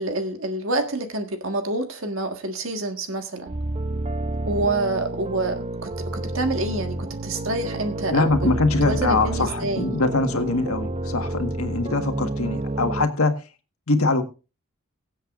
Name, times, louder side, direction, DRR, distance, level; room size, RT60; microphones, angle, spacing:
voice 1, 0.0-3.5 4.4-8.5 8.8-9.9, right 2 dB, 65° right, 1.6 m, -27 dB
sound 1, 3.5-13.1, right 2 dB, 30° right, 0.5 m, -30 dB
voice 2, 8.1-13.3 13.9-14.2, left 3 dB, 80° left, 1.6 m, -23 dB
22.5 x 7.9 x 2.5 m
head